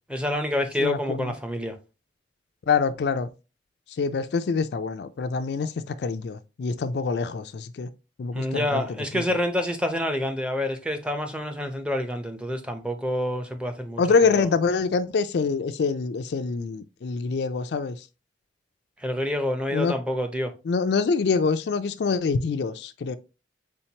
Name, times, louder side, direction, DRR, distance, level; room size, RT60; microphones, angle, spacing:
voice 1, 0.1-1.8 8.3-14.5 19.0-20.5, left 1 dB, 5° right, 0.6 m, -28 dB
voice 2, 0.8-1.3 2.7-3.3 4.0-7.9 8.2-8.8 9.1-9.2 14.0-18.0 19.7-19.9 20.7-23.2, left 5 dB, 65° left, 0.3 m, -25 dB
4.4 x 3.8 x 2.8 m
head